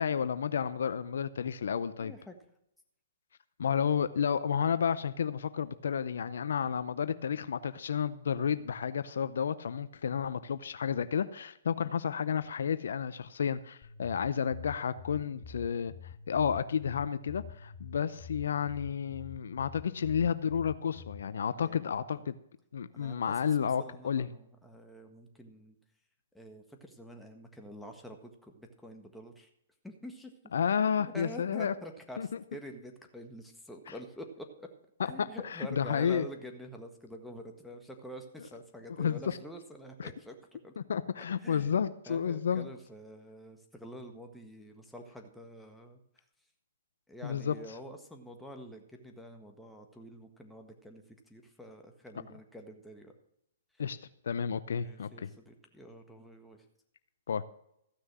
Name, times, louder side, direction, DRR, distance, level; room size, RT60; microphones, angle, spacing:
voice 1, 0.0-2.1 3.6-15.9 16.3-22.3 22.7-24.3 30.5-31.7 32.2-32.3 35.2-36.3 39.0-39.4 40.0-40.1 40.8-42.6 47.2-47.5 53.8-54.0 54.2-55.3 57.3-57.4, left 7 dB, 75° left, 14 dB, 0.6 m, -31 dB
voice 2, 2.0-2.4 11.8-11.9 21.5-22.0 22.9-25.8 26.3-29.5 29.8-30.3 31.0-34.7 35.0-40.4 40.6-40.7 41.1-41.7 42.1-46.2 47.1-53.1 54.8-56.6, equal, 5° left, 3 dB, 1.5 m, -47 dB
sound 1, 13.8-21.2, left 6 dB, 35° left, 1.6 m, -48 dB
14.5 x 6.3 x 6.1 m, 0.76 s
hypercardioid pair, 130°, 0 cm